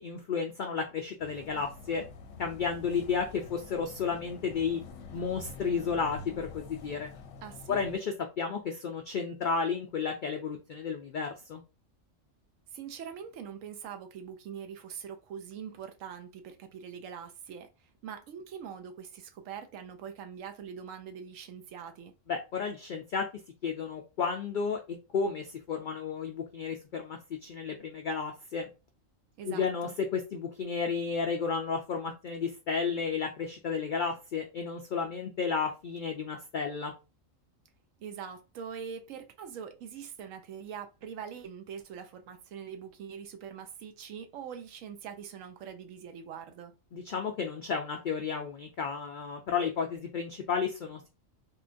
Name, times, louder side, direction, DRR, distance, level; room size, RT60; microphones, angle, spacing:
voice 1, 0.0-2.0 2.4-4.8 5.1-7.1 7.7-11.6 22.3-23.3 23.6-28.7 29.5-36.9 46.9-51.1, left 5 dB, 85° left, 0.4 m, -32 dB
sound 1, 1.2-8.0, left 3 dB, 70° left, 0.9 m, -47 dB
voice 2, 7.4-7.8 12.7-22.1 29.4-29.9 38.0-46.7, right 7 dB, 75° right, 1.0 m, -43 dB
3.6 x 2.2 x 2.5 m
omnidirectional pair, 1.4 m